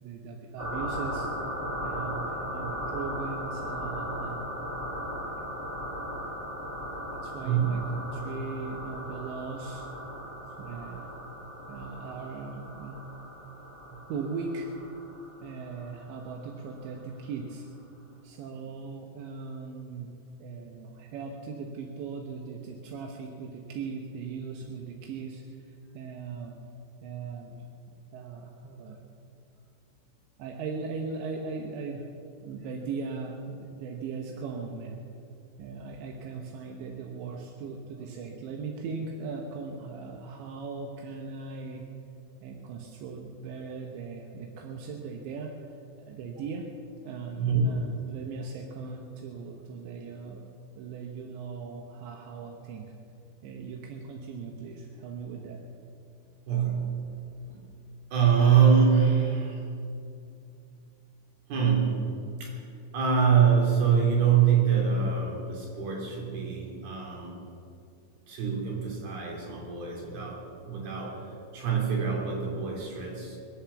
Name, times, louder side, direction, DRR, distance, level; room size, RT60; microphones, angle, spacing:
voice 1, 0.0-1.3 1.8-4.5 7.2-9.9 10.6-11.1 11.7-13.0 14.1-14.7 15.4-17.7 18.2-20.1 20.4-26.6 27.0-27.6 28.1-29.0 30.4-32.1 32.4-35.0 35.6-41.8 42.4-46.7 47.0-50.4 50.8-52.9 53.4-55.6, right 4 dB, 85° right, 1 dB, 3.4 m, -39 dB
sound 1, 0.6-16.8, equal, 20° right, 2.6 m, -37 dB
voice 2, 7.4-7.8 46.1-46.2 47.4-47.8 56.5-57.1 57.5-57.6 58.1-59.6 61.5-62.1 62.4-62.6 62.9-67.5 68.3-73.4, right 7 dB, 60° right, -2 dB, 5.0 m, -25 dB
24.5 x 8.2 x 7.1 m, 2.5 s
omnidirectional pair, 5.0 m